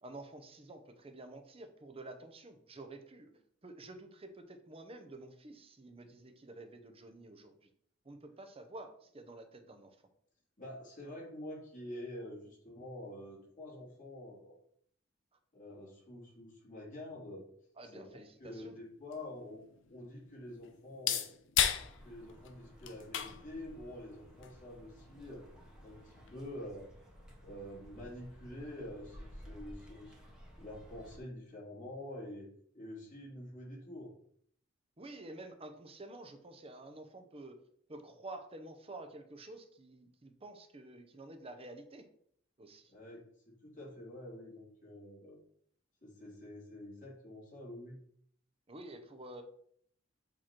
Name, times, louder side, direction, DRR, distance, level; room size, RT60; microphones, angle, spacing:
voice 1, 0.0-3.3 3.6-7.7 8.0-10.0 17.8-18.8 35.0-37.6 37.9-42.1 42.6-42.9 48.7-49.4, right 2 dB, 30° right, 7 dB, 0.7 m, -50 dB
voice 2, 10.6-14.5 15.5-17.5 17.9-18.1 18.4-19.6 19.9-21.3 22.0-25.5 25.8-26.9 27.4-30.2 30.6-32.5 32.7-34.1 42.9-45.4 46.0-48.0, left 1 dB, 45° left, -5 dB, 2.7 m, -47 dB
sound 1, 18.9-26.5, left 10 dB, 70° left, 0.6 m, -39 dB
sound 2, 21.7-31.2, equal, 5° right, 1.2 m, -55 dB
7.4 x 3.1 x 4.4 m, 0.64 s
head